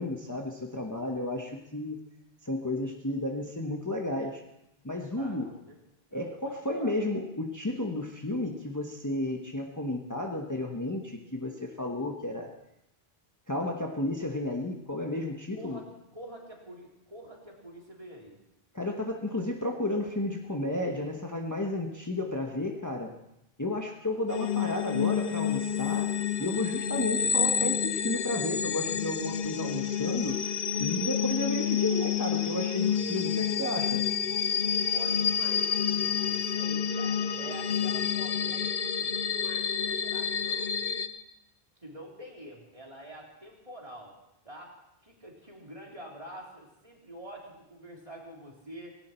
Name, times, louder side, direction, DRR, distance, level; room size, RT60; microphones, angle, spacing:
voice 1, 0.0-2.0 2.4-4.4 4.8-5.5 6.1-12.5 13.5-15.8 18.7-23.1 23.6-26.1 26.4-30.4 30.8-34.0, left 1 dB, 20° left, 1 dB, 1.2 m, -32 dB
voice 2, 5.2-5.8 6.1-6.4 6.7-7.0 15.5-18.4 34.9-40.7 41.8-44.1 44.4-44.7 45.0-49.0, right 1 dB, 35° right, -2 dB, 3.5 m, -47 dB
sound 1, 24.3-41.1, left 8 dB, 70° left, 1.1 m, -29 dB
18.0 x 17.5 x 4.4 m, 0.88 s
omnidirectional pair, 1.0 m